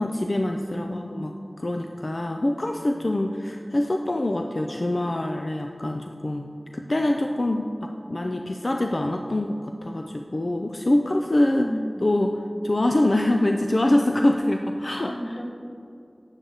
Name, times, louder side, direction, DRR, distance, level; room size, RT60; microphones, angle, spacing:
voice 1, 0.0-6.5 6.7-11.7 12.0-15.4, left 1 dB, 55° left, 4 dB, 0.5 m, -25 dB
voice 2, 0.6-1.3 11.6-11.8 15.1-15.5, equal, 25° left, -1 dB, 1.6 m, -34 dB
9.7 x 8.0 x 3.9 m, 2.5 s
wide cardioid pair, 40°, 0 cm